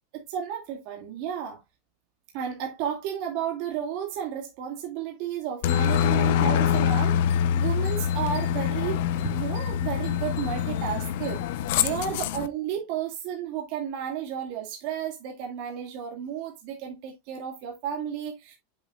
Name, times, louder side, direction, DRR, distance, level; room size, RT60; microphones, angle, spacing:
voice 1, 0.1-1.6 2.3-11.4 11.8-18.5, right 8 dB, 55° right, 2.3 m, -33 dB
Aircraft, 5.6-12.5, left 9 dB, 65° left, 0.8 m, -25 dB
8.1 x 7.3 x 2.4 m
supercardioid pair, 130°, 0 cm